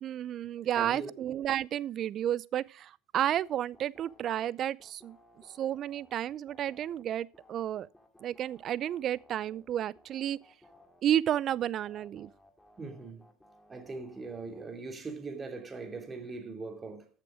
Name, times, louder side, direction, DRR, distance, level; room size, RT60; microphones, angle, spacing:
voice 1, 0.0-5.2 5.6-7.9 8.2-10.4 11.0-12.3, right 11 dB, 45° right, 0.5 m, -31 dB
voice 2, 0.7-1.2 12.8-13.2 13.7-17.1, right 3 dB, 25° right, 2.8 m, -41 dB
sound 1, 3.4-14.7, left 1 dB, 5° left, 2.5 m, -61 dB
14.0 x 6.7 x 5.0 m
hypercardioid pair, 95°, 0 cm